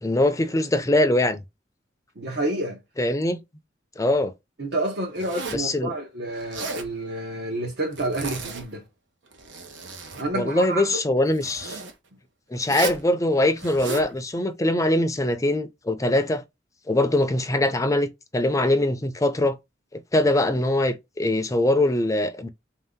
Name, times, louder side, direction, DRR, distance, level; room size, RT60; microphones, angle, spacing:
voice 1, 0.0-1.4 3.0-3.4 4.0-4.3 5.5-5.9 10.3-11.8 12.5-16.4 16.9-19.6 19.9-22.5, left 1 dB, 20° left, 0.5 m, -22 dB
voice 2, 2.2-2.8 4.6-8.8 10.2-11.0, right 1 dB, 60° right, 0.9 m, -29 dB
Zipper (clothing), 5.2-5.7 6.4-6.9 7.9-8.8 9.3-10.3 11.3-11.9 12.6-13.1 13.6-14.1, right 3 dB, 90° right, 0.9 m, -34 dB
3.8 x 2.8 x 3.6 m
head